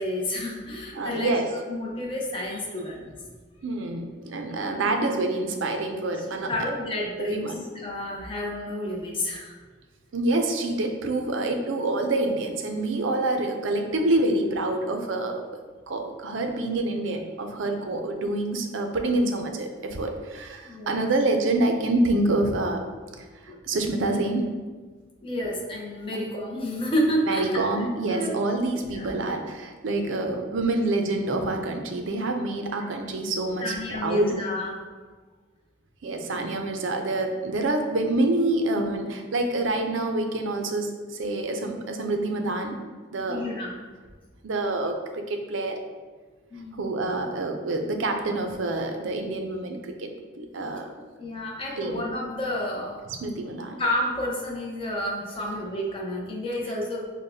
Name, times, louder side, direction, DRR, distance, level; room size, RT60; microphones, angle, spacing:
voice 1, 0.0-1.3 1.7-3.1 4.4-4.8 6.2-9.5 20.6-21.0 23.5-23.6 25.2-27.5 27.7-28.3 28.9-29.2 32.8-32.9 33.6-34.8 43.3-43.7 46.5-47.0 51.2-53.1 53.8-57.1, left 1 dB, 25° left, -2 dB, 0.7 m, -30 dB
voice 2, 1.0-1.5 3.6-6.5 7.2-7.6 10.1-15.5 15.9-22.8 23.4-24.5 27.3-33.7 34.0-34.3 36.0-42.8 43.1-43.4 44.4-45.8 46.8-50.9 51.8-52.0 53.2-53.8, right 2 dB, 70° right, 4 dB, 0.5 m, -27 dB
6.4 x 2.2 x 2.6 m, 1.4 s
head